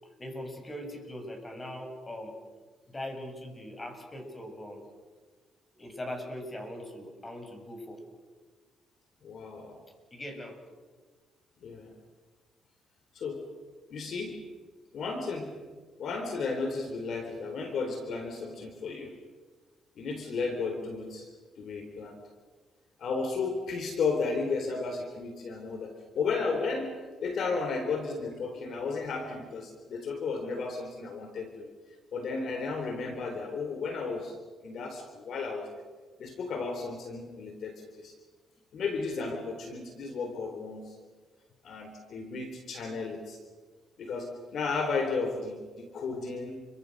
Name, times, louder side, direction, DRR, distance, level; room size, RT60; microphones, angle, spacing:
voice 1, 0.0-2.4 2.9-4.8 5.7-8.0 10.1-10.6 27.4-27.6, left 1 dB, 20° left, 4 dB, 7.5 m, -41 dB
voice 2, 9.2-9.8 11.6-12.0 13.1-13.4 13.9-14.4 14.9-15.5 16.0-19.1 20.0-21.3 21.6-22.2 23.0-31.7 32.1-34.3 34.6-35.7 36.2-38.1 38.7-41.0 41.6-43.4 44.0-46.7, left 4 dB, 65° left, 5 dB, 4.0 m, -34 dB
29.5 x 25.0 x 6.7 m, 1.4 s
cardioid pair, 90°, 0 cm